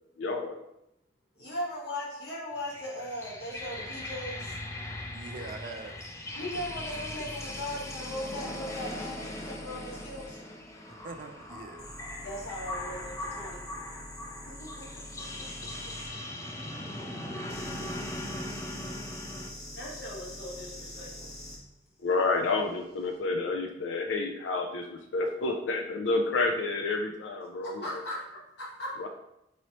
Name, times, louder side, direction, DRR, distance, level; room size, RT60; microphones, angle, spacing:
voice 1, 0.2-0.6 22.0-27.9 29.0-29.1, left 3 dB, 85° left, 3 dB, 0.4 m, -29 dB
voice 2, 1.3-4.6 6.3-10.4 12.2-13.6 14.6-14.8 15.4-15.5 19.7-21.3 27.6-28.9, left 1 dB, 65° left, -5 dB, 1.3 m, -38 dB
sound 1, 2.6-19.5, left 1 dB, 15° left, 0.4 m, -40 dB
voice 3, 5.1-6.0 10.9-11.9 18.4-19.1, right 3 dB, 50° right, 4 dB, 0.4 m, -44 dB
sound 2, 6.5-10.3 11.8-16.1 17.5-21.6 22.8-23.0, left 1 dB, 40° left, 1.1 m, -45 dB
4.0 x 3.1 x 2.9 m, 0.82 s
head